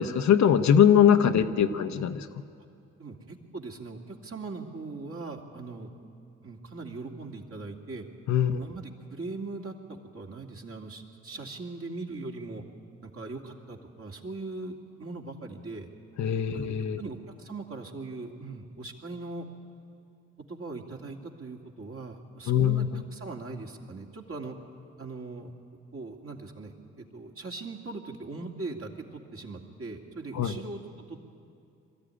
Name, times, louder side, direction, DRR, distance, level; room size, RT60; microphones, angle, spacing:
voice 1, 0.0-2.2 8.3-8.6 16.2-17.0 22.5-22.9 30.3-30.5, left 9 dB, 65° left, 8 dB, 1.0 m, -22 dB
voice 2, 3.0-5.9 6.4-8.1 8.5-9.7 10.1-12.6 13.0-15.9 16.5-19.5 20.5-24.5 25.0-25.5 25.9-30.8 31.1-31.2, right 3 dB, 45° right, 1 dB, 2.7 m, -40 dB
22.0 x 13.5 x 10.0 m, 2.5 s
hypercardioid pair, 50°, 31 cm